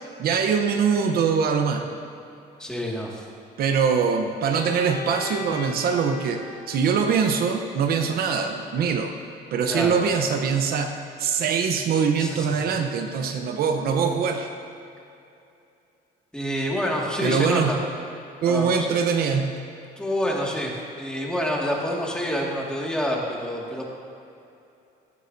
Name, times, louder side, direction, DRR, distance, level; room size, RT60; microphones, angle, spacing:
voice 1, 0.2-1.8 3.6-9.1 9.5-14.5 17.2-17.8 18.4-19.5, right 6 dB, 65° right, 5 dB, 0.8 m, -23 dB
voice 2, 2.6-3.2 9.7-10.0 12.2-12.6 16.3-17.8 18.5-18.9 20.0-20.7 21.0-23.8, equal, 5° left, -2 dB, 2.0 m, -27 dB
Bowed string instrument, 4.5-8.3, left 4 dB, 70° left, 2.7 m, -40 dB
15.5 x 11.0 x 2.7 m, 2.6 s
cardioid pair, 110°, 17 cm